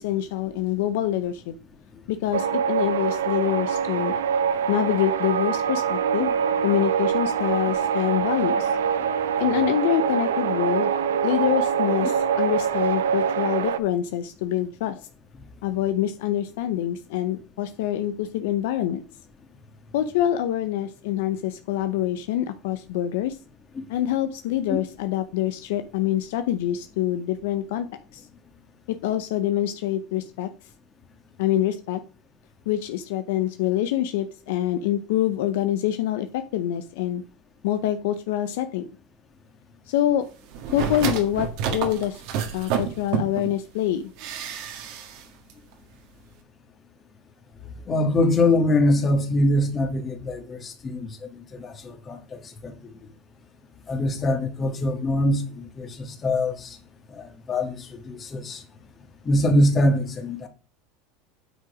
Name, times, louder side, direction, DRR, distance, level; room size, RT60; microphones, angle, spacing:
voice 1, 0.0-1.5 2.1-4.1 4.7-6.3 6.6-8.7 9.4-10.9 11.2-14.9 15.6-19.0 19.9-23.4 23.9-27.9 28.1-28.2 28.9-30.5 31.4-32.0 32.7-37.2 37.6-38.9 39.9-40.3 40.7-42.2 42.5-44.1, left 11 dB, 75° left, 0.7 m, -25 dB
sound 1, 2.3-13.8, right 7 dB, 90° right, 0.7 m, -24 dB
sound 2, 40.5-43.5 44.2-45.2 45.5-45.6, right 7 dB, 65° right, 1.8 m, -29 dB
voice 2, 47.9-52.9 53.9-56.8 57.1-58.6 59.2-60.5, left 1 dB, 30° left, 1.9 m, -24 dB
9.0 x 4.9 x 5.0 m
supercardioid pair, 105°, 0 cm